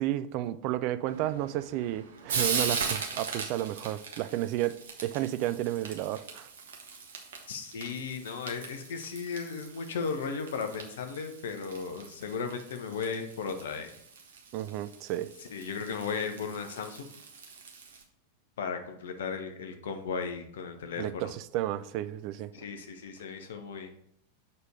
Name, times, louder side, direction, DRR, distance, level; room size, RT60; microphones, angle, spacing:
voice 1, 0.0-6.5 14.5-15.3 21.0-22.7, right 14 dB, 45° right, 13 dB, 0.4 m, -32 dB
Frying (food), 1.1-18.0, right 5 dB, 60° right, 1.3 m, -39 dB
voice 2, 7.5-13.9 15.4-17.1 18.6-21.3 22.5-23.9, left 5 dB, 60° left, 6 dB, 1.0 m, -36 dB
6.8 x 4.3 x 5.1 m, 0.70 s
figure-of-eight pair, 90°, 0 cm